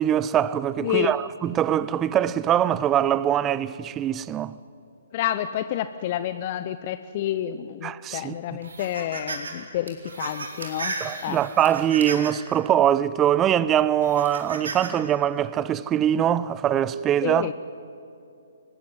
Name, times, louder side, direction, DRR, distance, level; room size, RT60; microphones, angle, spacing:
voice 1, 0.0-4.5 7.8-8.3 11.0-17.5, right 10 dB, 20° right, 0.7 m, -23 dB
voice 2, 0.8-1.1 5.1-11.4 17.2-17.5, left 11 dB, 40° left, 0.7 m, -29 dB
sound 1, 8.6-9.5 9.9-12.5 13.1-13.2 14.0-14.9, right 3 dB, 65° right, 4.2 m, -34 dB
23.5 x 19.5 x 9.4 m
figure-of-eight pair, 130°, 0 cm